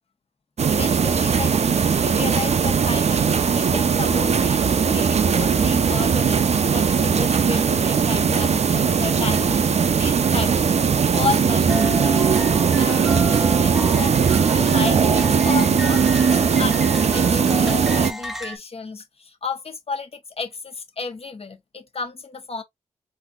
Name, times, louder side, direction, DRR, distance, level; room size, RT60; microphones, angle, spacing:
sound 1, 0.6-18.1, right 6 dB, 55° right, 0.5 m, -19 dB
voice 1, 0.7-12.3 12.8-22.6, left 5 dB, 50° left, 1.0 m, -33 dB
sound 2, 11.7-18.6, equal, ahead, 0.6 m, -32 dB
4.0 x 2.6 x 2.4 m
cardioid pair, 45°, 13 cm